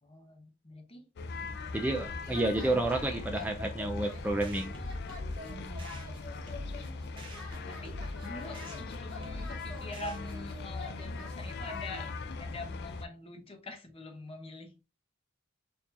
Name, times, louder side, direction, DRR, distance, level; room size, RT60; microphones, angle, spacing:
voice 1, 0.0-1.0 2.1-3.3 5.5-6.0 7.7-12.1 12.4-14.7, left 2 dB, 30° left, 0.8 m, -45 dB
sound 1, 1.2-13.1, left 3 dB, 55° left, 0.4 m, -40 dB
voice 2, 1.7-4.7, right 2 dB, 10° right, 0.3 m, -30 dB
sound 2, 2.2-12.1, left 3 dB, 80° left, 2.2 m, -47 dB
sound 3, 4.4-10.6, left 1 dB, 25° right, 1.1 m, -45 dB
4.5 x 2.7 x 2.5 m
head